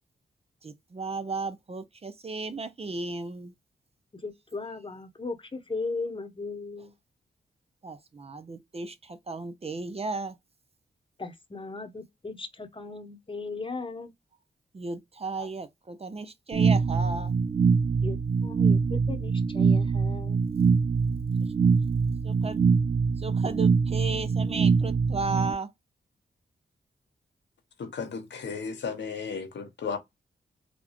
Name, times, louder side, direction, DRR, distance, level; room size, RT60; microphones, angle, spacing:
voice 1, 0.6-3.5 6.8-6.9 7.8-10.4 14.7-17.3 22.2-22.6 23.2-25.7, right 3 dB, 35° right, 0.5 m, -35 dB
voice 2, 4.1-6.9 11.2-14.1 15.4-15.5 18.0-20.4, left 3 dB, 30° left, 0.9 m, -37 dB
sound 1, 16.5-25.5, right 5 dB, 85° right, 0.9 m, -24 dB
voice 3, 27.8-30.0, left 5 dB, 75° left, 0.9 m, -34 dB
4.0 x 2.2 x 2.9 m
cardioid pair, 60°, 19 cm